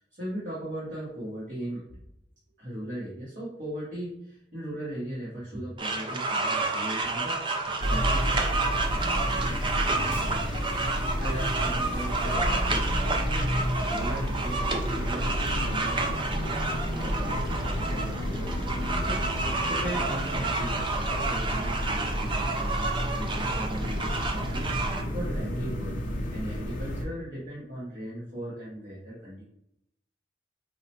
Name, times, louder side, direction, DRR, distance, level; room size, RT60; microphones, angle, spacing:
voice 1, 0.0-2.0 2.6-8.5 9.4-9.7 11.2-25.9 26.3-29.4, equal, 50° right, -9 dB, 1.2 m, -38 dB
sound 1, 5.8-25.0, right 3 dB, 30° right, 0.5 m, -30 dB
sound 2, 7.8-27.0, equal, 50° left, 0.6 m, -31 dB
4.6 x 2.1 x 2.9 m, 0.79 s
head